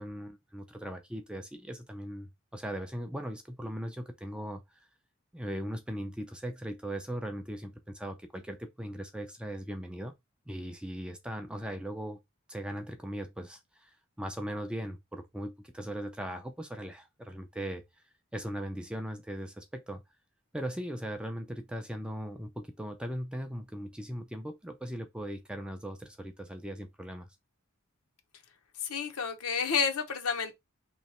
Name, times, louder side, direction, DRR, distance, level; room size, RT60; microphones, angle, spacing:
voice 1, 0.0-4.9 5.3-10.1 10.5-12.2 12.5-17.8 18.3-20.0 20.5-27.3, equal, 5° right, 0.4 m, -39 dB
voice 2, 28.8-30.5, left 6 dB, 80° left, 0.9 m, -30 dB
3.1 x 2.8 x 4.1 m
head